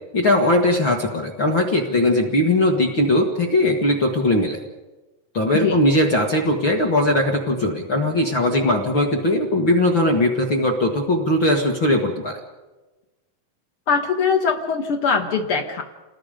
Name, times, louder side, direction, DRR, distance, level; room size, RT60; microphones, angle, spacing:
voice 1, 0.1-4.6 5.3-12.4, left 1 dB, 50° left, 1 dB, 1.5 m, -19 dB
voice 2, 13.9-15.8, left 5 dB, 85° left, 3 dB, 1.2 m, -21 dB
28.5 x 20.0 x 5.2 m, 1.1 s
omnidirectional pair, 4.9 m